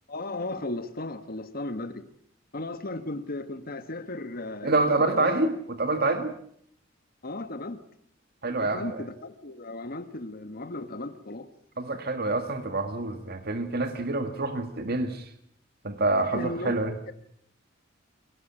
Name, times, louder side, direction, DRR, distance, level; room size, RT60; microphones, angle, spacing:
voice 1, 0.1-2.1 2.5-5.4 7.2-7.8 8.6-11.5 16.3-16.7 17.1-17.2, left 2 dB, 50° left, 10 dB, 1.3 m, -35 dB
voice 2, 4.6-6.3 8.4-9.1 11.8-15.3 15.8-16.9, right 2 dB, 50° right, 8 dB, 1.7 m, -27 dB
24.5 x 17.5 x 8.8 m, 0.70 s
head